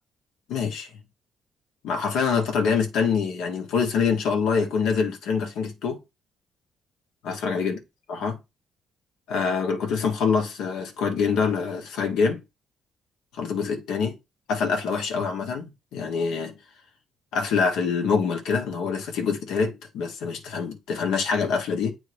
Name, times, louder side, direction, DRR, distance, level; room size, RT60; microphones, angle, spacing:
voice 1, 0.5-1.0 1.8-6.0 7.2-7.8 8.1-8.4 9.3-12.4 13.4-14.1 14.5-16.5 17.3-21.9, left 5 dB, 90° left, 1.2 m, -25 dB
8.0 x 3.6 x 3.4 m
cardioid pair, 90°, 0 cm